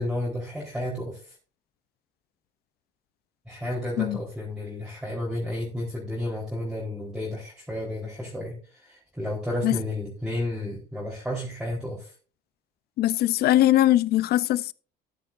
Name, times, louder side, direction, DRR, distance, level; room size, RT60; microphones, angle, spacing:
voice 1, 0.0-1.4 3.5-12.1, left 1 dB, 5° right, 4.0 m, -32 dB
voice 2, 13.0-14.7, left 14 dB, 70° left, 0.6 m, -21 dB
13.5 x 10.5 x 2.6 m
cardioid pair, 110°, 17 cm